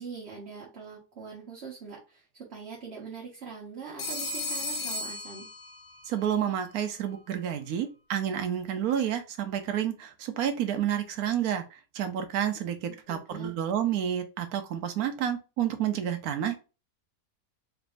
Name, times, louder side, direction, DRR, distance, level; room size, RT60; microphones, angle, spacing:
voice 1, 0.0-5.5 12.9-13.5, right 5 dB, 45° right, 1.2 m, -43 dB
Telephone, 4.0-6.1, left 2 dB, 80° left, 1.5 m, -35 dB
voice 2, 6.1-16.6, right 9 dB, 75° right, 1.2 m, -30 dB
4.0 x 3.4 x 2.5 m
omnidirectional pair, 1.6 m